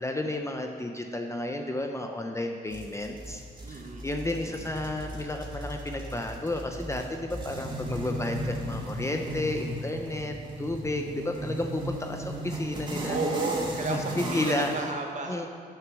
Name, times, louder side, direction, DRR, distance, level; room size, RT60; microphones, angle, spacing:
voice 1, 0.0-3.4 3.7-13.2 13.9-14.7 15.3-15.5, left 1 dB, 15° left, 4 dB, 0.7 m, -32 dB
sound 1, 2.7-14.8, equal, 25° right, 1.7 m, -36 dB
voice 2, 3.6-4.1 4.4-4.5 13.0-15.5, right 3 dB, 45° right, 2 dB, 1.3 m, -32 dB
9.3 x 6.6 x 6.3 m, 2.1 s
cardioid pair, 110°, 17 cm